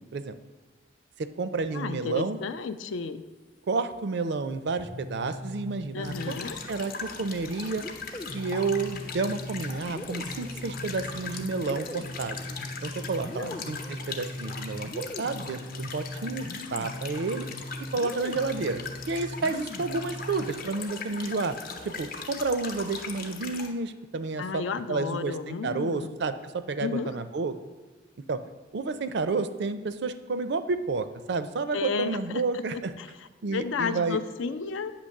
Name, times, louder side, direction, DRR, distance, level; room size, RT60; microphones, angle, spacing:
voice 1, 1.2-2.4 3.7-6.4 6.7-7.9 8.3-12.4 12.8-17.5 17.9-18.8 19.1-21.6 21.8-27.5 28.3-28.4 28.7-32.9 33.4-34.2, right 3 dB, 60° right, 11 dB, 0.4 m, -30 dB
voice 2, 1.7-3.3 5.9-6.6 13.4-13.6 24.4-26.2 26.8-27.2 31.7-33.1 33.5-34.9, left 5 dB, 85° left, 11 dB, 0.4 m, -32 dB
sound 1, 4.7-6.8 7.8-20.7, left 1 dB, 20° left, 0.3 m, -40 dB
sound 2, 6.0-23.7, left 4 dB, 50° left, 0.7 m, -40 dB
8.4 x 3.0 x 6.4 m, 1.4 s
head